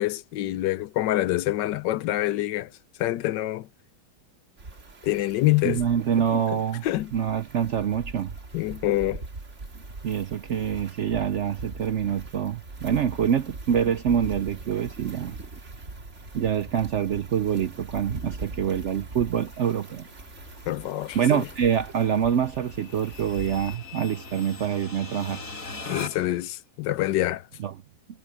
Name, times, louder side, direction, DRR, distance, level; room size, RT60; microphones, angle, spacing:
voice 1, 0.0-2.7 3.0-3.7 5.0-5.8 6.8-7.1 8.5-9.2 20.7-21.4 25.9-27.4, left 15 dB, 90° left, 1.3 m, -26 dB
sound 1, 4.6-23.8, right 3 dB, 45° right, 2.5 m, -42 dB
voice 2, 5.6-6.9 7.1-8.3 10.0-15.3 16.3-20.1 21.1-25.4 27.6-27.8, right 8 dB, 65° right, 0.7 m, -26 dB
sound 2, 16.2-26.5, left 3 dB, 50° left, 5.2 m, -43 dB
omnidirectional pair, 1.8 m